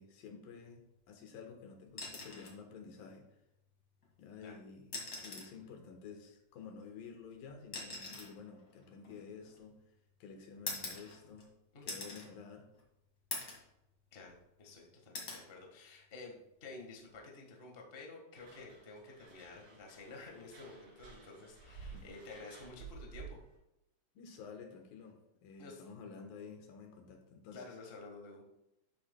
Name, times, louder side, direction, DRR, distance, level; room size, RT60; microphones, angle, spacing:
voice 1, 0.0-3.3 4.2-9.8 10.2-11.5 11.8-12.7 21.8-22.1 24.2-27.6, left 5 dB, 90° left, 4 dB, 3.0 m, -51 dB
sound 1, 1.9-2.6 4.0-4.2 4.8-5.6 6.8-9.8 10.7-11.5 11.9-12.3 12.7-12.8 13.3-13.7 14.1-14.7 15.1-15.5 16.9-17.2, left 3 dB, 35° left, 2.2 m, -44 dB
voice 2, 14.1-23.4 25.6-25.8 27.5-28.4, left 3 dB, 55° left, 0 dB, 0.6 m, -51 dB
sound 2, 18.4-23.6, right 5 dB, 65° right, 4.2 m, -53 dB
11.5 x 8.3 x 2.3 m, 0.89 s
omnidirectional pair, 3.9 m